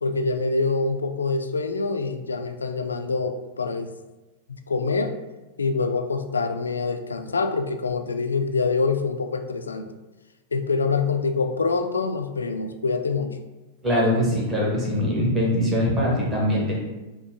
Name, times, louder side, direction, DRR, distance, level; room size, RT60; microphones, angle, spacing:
voice 1, 0.0-3.9 4.5-5.1 5.6-9.9 10.5-13.4, left 4 dB, 75° left, 7 dB, 0.3 m, -25 dB
voice 2, 13.8-16.8, equal, 15° right, -5 dB, 1.2 m, -22 dB
5.5 x 2.1 x 2.7 m, 1.1 s
figure-of-eight pair, 95°, 0 cm